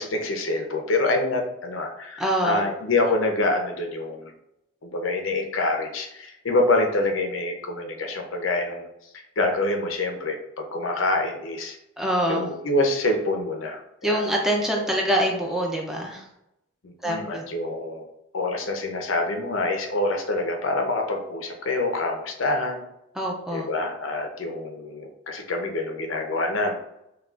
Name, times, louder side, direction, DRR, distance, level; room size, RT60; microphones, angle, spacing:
voice 1, 0.0-4.3 4.8-8.9 9.4-11.8 12.3-14.2 14.9-15.0 16.8-18.0 18.3-22.8 23.5-26.7, left 2 dB, 75° left, 3 dB, 0.7 m, -26 dB
voice 2, 2.2-2.6 12.0-12.4 14.0-16.3 17.0-17.5 23.1-23.7, equal, ahead, -1 dB, 0.4 m, -25 dB
5.7 x 2.3 x 2.4 m, 0.84 s
head